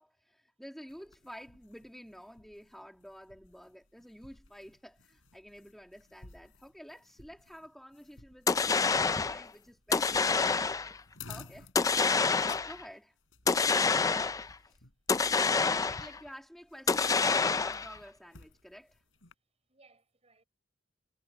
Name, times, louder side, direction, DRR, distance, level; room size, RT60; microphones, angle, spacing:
voice 1, 0.0-10.6 11.3-11.7 12.6-13.2 14.4-14.8 15.5-19.0, equal, ahead, 1.8 m, -50 dB
sound 1, 0.9-19.3, left 5 dB, 75° left, 3.8 m, -56 dB
sound 2, 8.5-9.4 9.9-11.0 11.8-12.8 13.5-14.5 15.1-16.2 16.9-18.0, left 4 dB, 15° left, 0.3 m, -27 dB
voice 2, 15.9-16.3 19.7-20.4, right 3 dB, 30° right, 6.7 m, -66 dB
head